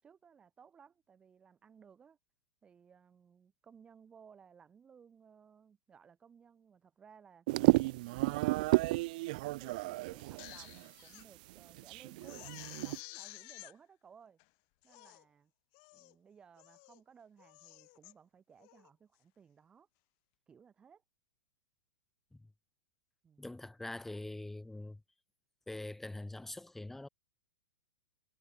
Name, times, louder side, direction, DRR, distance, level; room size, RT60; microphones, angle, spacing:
voice 1, 0.0-2.2 2.6-7.5 8.0-14.4 14.8-15.5 15.9-19.9 20.5-21.0 23.2-23.6, right 7 dB, 15° right, 4.0 m, -60 dB
sound 1, 7.5-10.9 11.2-11.3 11.5-13.0, right 21 dB, 50° right, 0.4 m, -32 dB
Crying sobbing, 10.2-11.3 11.7-11.8 12.2-13.7 14.4-14.5 14.8-15.2 15.7-16.1 16.6-17.0 17.4-18.1 18.6-18.9, left 40 dB or more, 45° left, 1.2 m, -52 dB
voice 2, 23.4-25.0 25.7-27.1, left 2 dB, 5° left, 1.3 m, -44 dB
hypercardioid pair, 140°, 6 cm